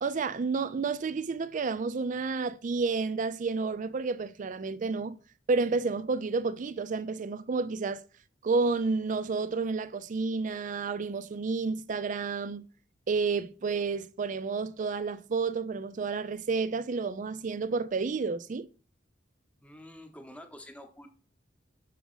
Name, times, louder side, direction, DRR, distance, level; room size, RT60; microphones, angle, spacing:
voice 1, 0.0-5.2 5.5-8.0 8.4-12.7 13.1-18.7, right 4 dB, 45° right, 0.4 m, -30 dB
voice 2, 19.6-21.1, left 1 dB, 5° left, 0.9 m, -48 dB
6.0 x 4.1 x 5.5 m
head